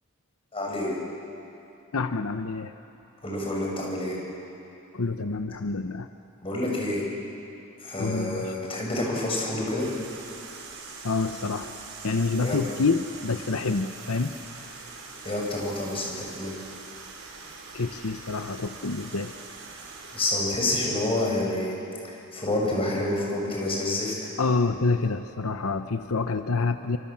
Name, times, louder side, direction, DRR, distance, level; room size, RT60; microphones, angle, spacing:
voice 1, 0.5-1.0 3.2-4.2 6.4-7.0 7.8-9.9 12.4-12.6 15.2-16.6 20.1-21.7 22.0-24.1, left 1 dB, 25° left, -2 dB, 6.9 m, -28 dB
voice 2, 1.9-2.7 4.9-6.1 8.0-8.5 11.0-11.7 12.0-14.3 17.7-19.3 24.4-27.0, left 3 dB, 90° left, 8 dB, 0.9 m, -27 dB
sound 1, 9.8-20.3, right 4 dB, 85° right, 5.0 m, -43 dB
27.0 x 26.5 x 7.5 m, 2.8 s
head